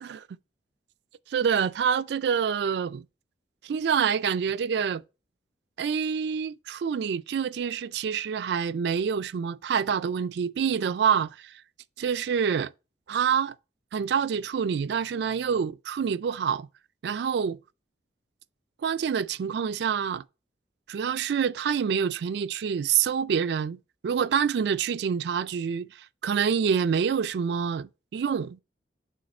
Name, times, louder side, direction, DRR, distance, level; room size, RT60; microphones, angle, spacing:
voice 1, 1.3-3.0 3.6-5.0 5.8-11.6 12.0-12.7 13.1-13.5 13.9-16.7 17.0-17.6 18.8-20.2 20.9-23.8 24.0-28.6, right 7 dB, 65° right, 0.3 m, -27 dB
6.4 x 3.5 x 4.2 m
head